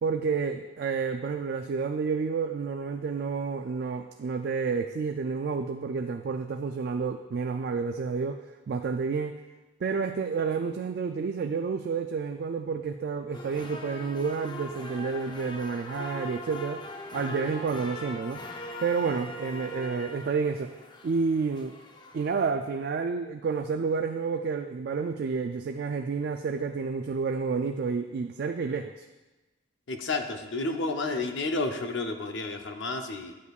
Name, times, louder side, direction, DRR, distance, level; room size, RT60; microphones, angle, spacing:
voice 1, 0.0-9.4 9.8-16.8 17.1-18.4 18.8-20.7 21.0-21.7 22.1-29.1, right 5 dB, 55° right, 6 dB, 0.3 m, -30 dB
sound 1, 13.3-22.5, left 2 dB, 25° left, 0.6 m, -41 dB
voice 2, 29.9-33.3, left 3 dB, 70° left, 5 dB, 0.7 m, -31 dB
9.2 x 8.2 x 2.4 m, 1.1 s
head